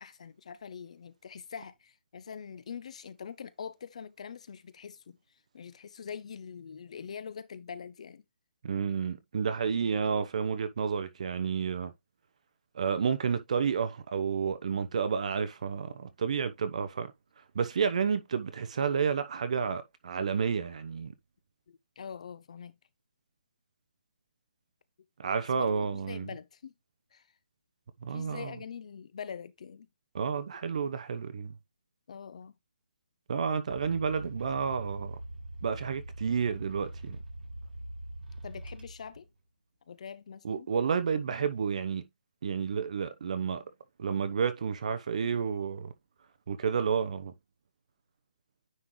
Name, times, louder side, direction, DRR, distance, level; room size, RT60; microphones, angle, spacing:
voice 1, 0.0-5.2 5.5-8.2 21.7-22.8 25.5-26.7 27.1-27.2 28.0-29.9 32.1-32.5 38.4-39.3 39.9-40.7, left 7 dB, 40° left, 0.5 m, -44 dB
voice 2, 8.6-11.9 12.7-17.1 17.5-21.1 25.2-26.3 28.0-28.5 30.1-31.6 33.3-35.2 35.6-37.2 40.4-42.1 42.4-43.6 44.0-45.9 46.5-47.3, right 6 dB, 45° right, 0.9 m, -30 dB
sound 1, 33.7-39.2, right 1 dB, 75° right, 5.3 m, -43 dB
9.6 x 3.8 x 3.1 m
hypercardioid pair, 170°, 5 cm